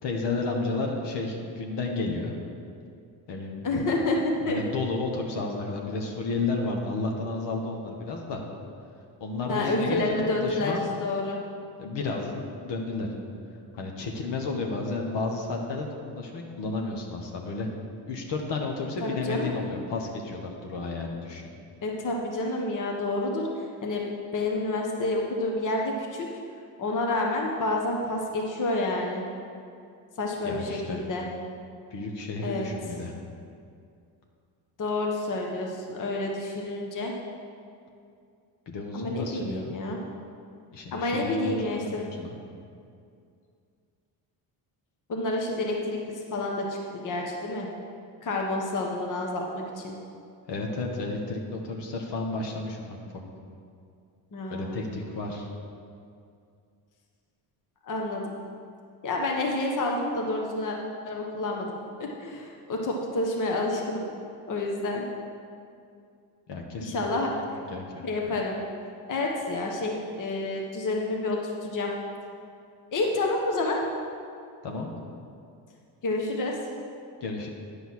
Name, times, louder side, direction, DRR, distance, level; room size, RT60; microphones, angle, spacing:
voice 1, 0.0-2.4 3.3-3.6 4.4-8.4 9.2-10.1 10.4-10.9 11.8-13.1 13.7-15.9 16.2-17.7 18.1-21.5 30.4-31.0 31.9-33.1 38.7-39.7 40.7-42.4 50.5-52.8 54.5-55.5 66.5-67.0 67.3-68.1 74.6-74.9 77.2-77.5, left 3 dB, 65° left, 1 dB, 1.4 m, -32 dB
voice 2, 3.6-4.2 4.4-4.6 9.5-11.4 19.0-19.5 21.8-23.5 23.8-24.0 24.3-26.3 26.8-29.2 30.2-31.3 32.4-32.7 34.8-37.1 38.9-40.0 40.9-42.0 45.1-47.7 48.2-50.0 54.3-54.9 57.8-58.3 59.0-60.8 61.0-64.1 64.5-65.0 66.8-67.6 68.0-68.6 69.1-71.9 72.9-73.8 76.0-76.6, left 2 dB, 40° left, 0 dB, 1.3 m, -29 dB
10.0 x 5.4 x 6.2 m, 2.4 s
cardioid pair, 95°, 46 cm